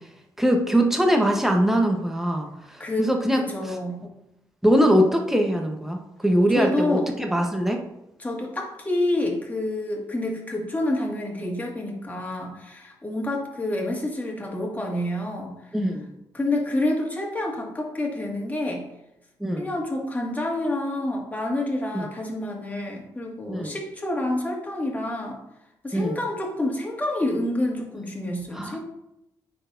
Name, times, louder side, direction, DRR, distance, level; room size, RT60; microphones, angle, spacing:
voice 1, 0.4-3.7 4.6-7.8 15.7-16.1 19.4-19.7 21.9-22.1 23.5-23.7 25.9-26.2 28.5-28.8, equal, 5° right, 2 dB, 1.1 m, -22 dB
voice 2, 2.8-4.0 6.6-7.1 8.2-15.6 16.3-18.8 19.5-25.4 25.8-28.8, left 1 dB, 20° left, -1 dB, 2.0 m, -28 dB
9.6 x 4.3 x 2.7 m, 0.86 s
cardioid pair, 65°, 8 cm